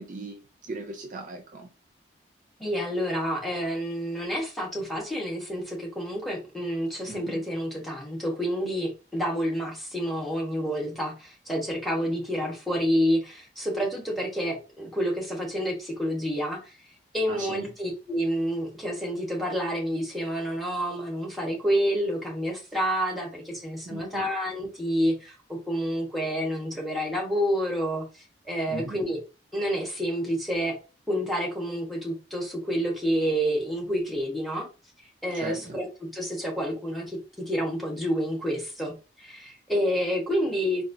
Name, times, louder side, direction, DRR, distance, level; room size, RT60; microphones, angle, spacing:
voice 1, 0.0-1.7 7.1-7.4 17.3-17.7 23.9-24.3 28.7-29.1 35.4-35.8, right 2 dB, 45° right, 0.4 m, -38 dB
voice 2, 2.6-16.7 17.1-28.0 28.5-29.2 29.5-30.7 31.1-34.7 35.2-40.8, equal, ahead, 1.0 m, -29 dB
4.0 x 2.3 x 2.6 m
head